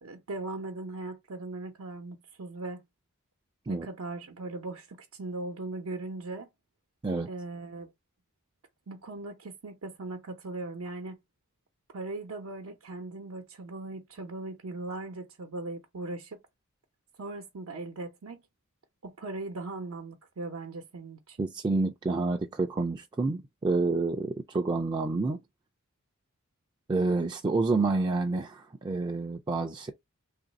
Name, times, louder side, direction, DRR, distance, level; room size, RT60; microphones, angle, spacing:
voice 1, 0.0-2.8 3.7-6.5 7.3-7.9 8.9-11.2 11.9-16.4 17.2-18.4 19.0-21.5, right 2 dB, 85° right, 0.7 m, -39 dB
voice 2, 21.4-25.4 26.9-29.9, right 3 dB, 20° right, 0.3 m, -28 dB
3.1 x 2.5 x 3.9 m
head